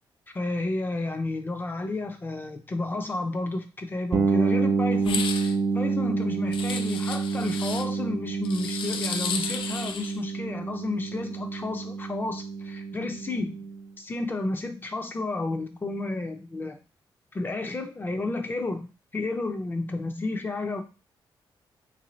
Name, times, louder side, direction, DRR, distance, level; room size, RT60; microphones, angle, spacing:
voice 1, 0.3-13.6 14.0-16.8 17.3-20.8, left 2 dB, 25° left, 6 dB, 0.5 m, -32 dB
sound 1, 4.1-13.8, right 4 dB, 45° right, 0.4 m, -28 dB
sound 2, 5.0-5.5 6.5-7.9 8.5-10.2, left 6 dB, 90° left, 0.4 m, -33 dB
3.4 x 2.6 x 3.0 m, 0.32 s
wide cardioid pair, 130°, 9 cm